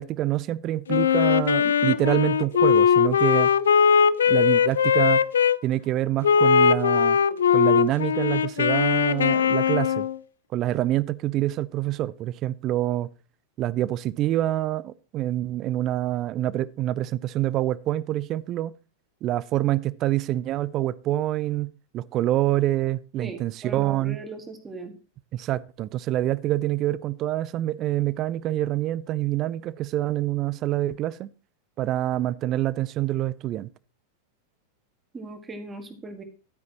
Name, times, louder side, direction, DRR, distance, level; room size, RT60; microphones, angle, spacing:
voice 1, 0.0-3.5 4.3-5.2 5.6-7.2 7.5-10.1 10.5-13.1 13.6-18.7 19.2-24.2 25.3-31.3 31.8-33.7, right 14 dB, 35° right, 0.5 m, -26 dB
Wind instrument woodwind instrument, 0.9-5.6 6.2-10.2, left 7 dB, 65° left, 0.4 m, -20 dB
voice 2, 23.2-24.9 35.1-36.2, right 3 dB, 15° right, 2.0 m, -38 dB
12.0 x 9.3 x 2.9 m
figure-of-eight pair, 90°, 0 cm